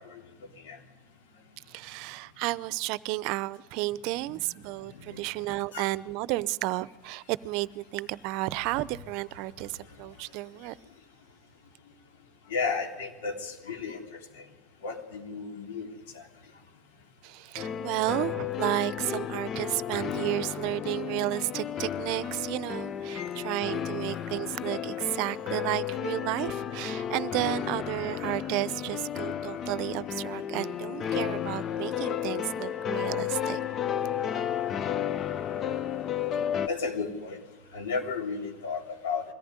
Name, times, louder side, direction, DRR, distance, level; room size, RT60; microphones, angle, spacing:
voice 1, 1.7-10.8 17.2-33.6, right 18 dB, 65° right, 0.7 m, -32 dB
voice 2, 12.5-14.0 14.8-15.9 23.2-23.3 36.7-37.4 37.7-39.2, left 5 dB, 80° left, 3.3 m, -33 dB
sound 1, 17.6-36.7, left 9 dB, 40° left, 0.8 m, -33 dB
22.0 x 14.5 x 9.6 m
supercardioid pair, 105°, 0 cm